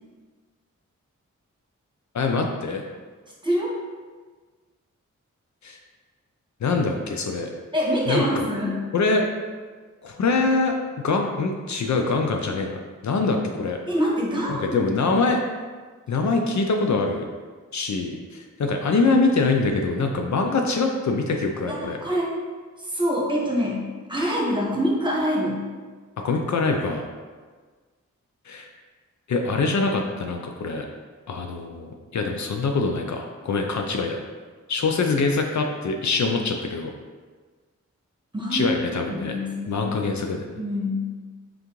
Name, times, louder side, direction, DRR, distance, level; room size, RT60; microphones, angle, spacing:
voice 1, 2.1-2.8 5.6-5.8 6.6-7.5 8.1-8.5 8.9-9.2 10.0-10.7 11.0-12.8 13.0-13.8 14.5-15.4 16.1-17.2 17.7-22.0 26.2-27.1 28.5-28.7 29.3-30.9 31.3-34.2 34.7-36.9 38.5-39.4 39.7-40.4, left 3 dB, 60° left, 3 dB, 0.5 m, -24 dB
voice 2, 3.4-3.8 7.7-8.8 13.9-14.8 21.7-22.3 22.8-25.6 38.3-38.7 39.1-39.9 40.5-41.1, equal, 15° right, -4 dB, 1.3 m, -25 dB
3.8 x 3.3 x 3.0 m, 1.4 s
cardioid pair, 40°, 32 cm